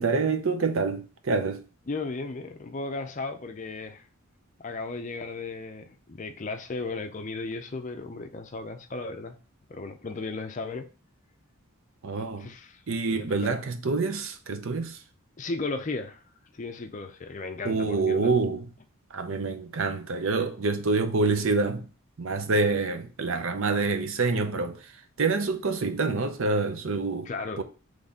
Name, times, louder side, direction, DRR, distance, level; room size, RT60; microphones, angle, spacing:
voice 1, 0.0-1.6 12.0-12.5 12.9-15.0 17.6-18.7 19.1-21.8 22.2-24.8 25.2-27.3 27.6-27.7, right 3 dB, 65° right, 0.6 m, -26 dB
voice 2, 1.9-4.1 4.6-9.4 9.7-10.9 12.4-12.8 13.1-13.6 15.4-16.2 16.5-18.4 27.2-27.6, left 3 dB, 35° left, 0.5 m, -35 dB
4.0 x 3.2 x 3.6 m
head